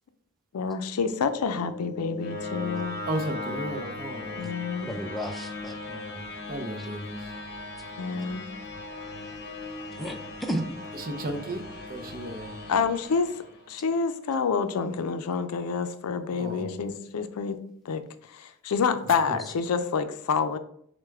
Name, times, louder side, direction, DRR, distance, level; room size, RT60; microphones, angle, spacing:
voice 1, 0.5-3.0 4.4-4.9 8.0-8.5 12.7-13.3 13.7-17.6 17.9-18.0 18.3-20.6, left 5 dB, 80° left, 0.4 m, -28 dB
sound 1, 0.9-13.9, left 2 dB, 50° left, 0.7 m, -38 dB
voice 2, 3.1-4.5 6.5-7.3 10.9-11.6 11.9-12.5 16.3-16.9 19.0-19.4, right 1 dB, 40° right, 0.6 m, -34 dB
voice 3, 4.9-6.2 10.0-10.6, equal, ahead, 0.5 m, -33 dB
6.4 x 2.2 x 3.5 m
head